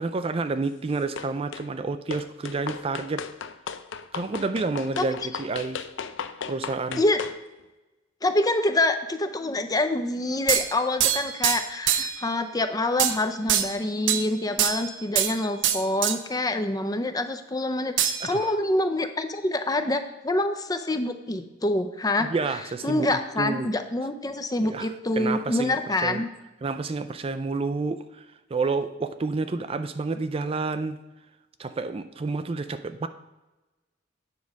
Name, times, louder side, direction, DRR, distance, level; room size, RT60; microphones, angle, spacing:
voice 1, 0.0-3.3 4.1-5.9 6.5-7.0 18.2-18.5 22.2-23.7 24.6-26.2 26.6-28.3 28.5-31.0 31.6-33.1, right 3 dB, 30° right, 10 dB, 0.4 m, -29 dB
sound 1, 1.2-1.7 2.1-7.4, left 6 dB, 75° left, 0.5 m, -36 dB
voice 2, 8.2-22.3 22.8-26.3, left 2 dB, 20° left, 9 dB, 0.5 m, -26 dB
sound 2, 10.5-12.2 13.0-13.2 13.5-14.3 14.6-15.4 15.6-16.2 18.0-18.5, right 10 dB, 70° right, 0.6 m, -24 dB
9.4 x 4.7 x 6.3 m, 1.1 s
head